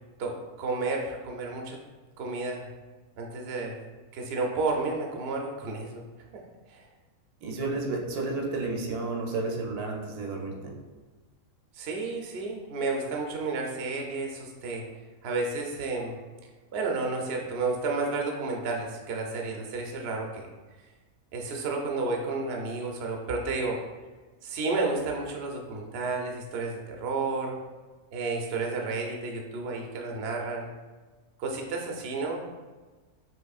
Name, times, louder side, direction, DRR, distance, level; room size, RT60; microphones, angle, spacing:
voice 1, 0.2-1.8 2.2-2.7 3.2-3.8 4.1-6.0 6.7-6.8 11.7-14.8 15.2-16.2 16.7-20.5 21.3-23.8 24.4-27.5 28.1-30.7 31.4-32.5, right 3 dB, 55° right, 1 dB, 0.7 m, -31 dB
voice 2, 7.4-10.8, right 3 dB, 80° right, 1 dB, 1.2 m, -31 dB
5.9 x 3.0 x 2.4 m, 1.3 s
omnidirectional pair, 1.6 m